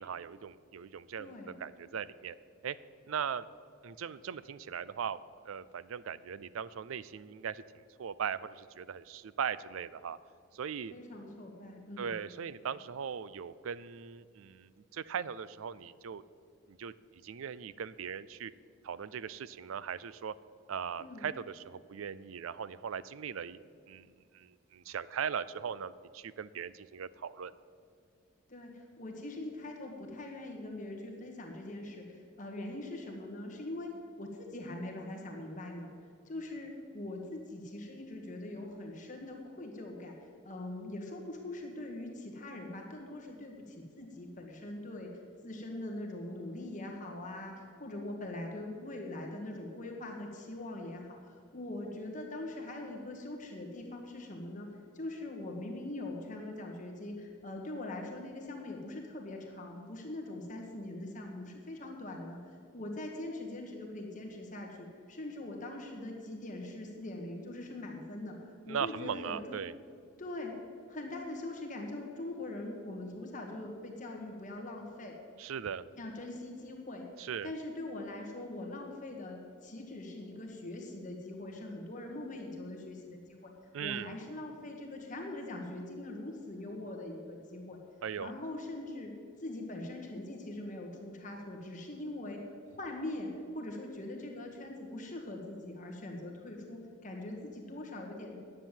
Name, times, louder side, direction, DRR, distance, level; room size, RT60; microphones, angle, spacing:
voice 1, 0.0-2.3 2.6-2.8 3.1-3.4 3.8-5.2 5.4-10.2 10.5-10.9 12.0-16.2 16.7-16.9 17.2-18.5 18.8-20.3 20.7-23.6 23.9-24.1 24.3-27.5 68.7-69.8 75.4-75.9 77.2-77.5 83.7-84.1 88.0-88.3, right 7 dB, 80° right, 17 dB, 0.4 m, -39 dB
voice 2, 1.2-1.6 10.9-12.2 21.0-21.2 28.5-33.9 34.2-35.9 36.2-45.1 45.4-54.7 54.9-62.4 62.7-69.6 70.2-70.5 70.9-75.1 75.9-77.0 77.4-83.5 83.8-87.8 88.2-89.1 89.4-92.4 92.6-93.3 93.5-98.4, left 1 dB, 35° left, 1 dB, 1.6 m, -42 dB
9.9 x 7.5 x 9.0 m, 2.3 s
head